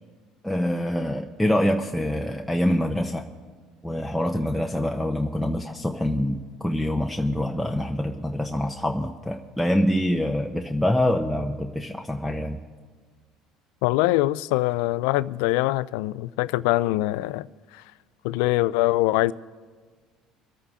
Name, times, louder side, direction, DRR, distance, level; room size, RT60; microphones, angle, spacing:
voice 1, 0.4-3.2 3.8-12.6, left 1 dB, ahead, 0.8 m, -25 dB
voice 2, 13.8-17.5 17.7-17.8 18.2-19.3, left 18 dB, 85° left, 0.3 m, -23 dB
25.5 x 8.6 x 3.7 m
supercardioid pair, 95°, 0 cm